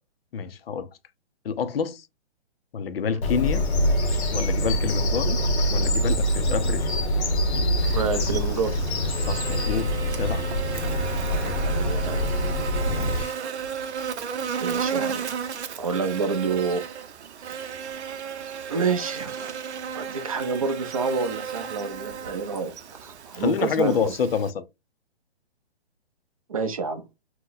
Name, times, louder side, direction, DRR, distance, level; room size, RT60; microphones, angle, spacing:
voice 1, 0.3-0.9 1.4-2.1 2.7-3.6 4.3-5.4 5.7-6.8 9.2-9.9 10.2-10.4 12.9-13.3 23.4-24.6, left 6 dB, 60° left, 0.5 m, -27 dB
Bird vocalization bird call bird song, 3.2-13.2, equal, 80° left, 0.9 m, -25 dB
Buzz, 7.8-24.5, right 7 dB, 85° right, 0.7 m, -34 dB
voice 2, 7.9-8.7 11.3-12.3 14.6-15.2 15.8-16.8 17.5-17.8 18.7-19.6 19.9-22.7 23.0-24.2 26.5-27.0, right 5 dB, 35° right, 0.5 m, -28 dB
2.8 x 2.1 x 3.8 m
hypercardioid pair, 170°, 33 cm